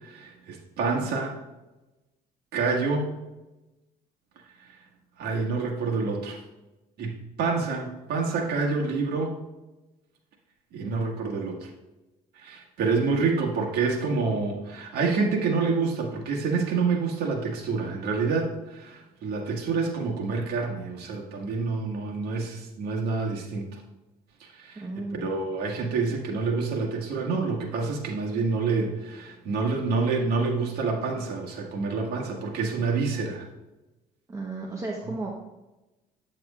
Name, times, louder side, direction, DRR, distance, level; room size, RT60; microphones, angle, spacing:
voice 1, 0.0-1.4 2.5-3.1 5.2-6.4 7.0-9.4 10.7-11.7 12.4-23.8 24.4-24.8 25.2-33.5, right 4 dB, 70° right, 0 dB, 1.7 m, -27 dB
voice 2, 24.8-25.3 34.3-35.3, right 2 dB, 20° right, -2 dB, 1.0 m, -34 dB
8.5 x 7.6 x 2.4 m, 1.0 s
cardioid pair, 110°, 17 cm